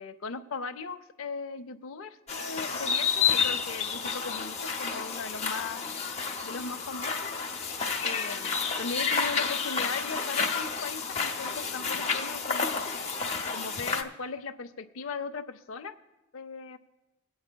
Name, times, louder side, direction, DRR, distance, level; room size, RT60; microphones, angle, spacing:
voice 1, 0.0-5.8 6.4-7.3 8.0-12.9 13.5-15.9 16.3-16.8, left 4 dB, 75° left, 11 dB, 0.5 m, -38 dB
sound 1, 2.3-14.0, left 5 dB, 30° left, 0.7 m, -30 dB
24.5 x 8.5 x 2.2 m, 1.0 s
head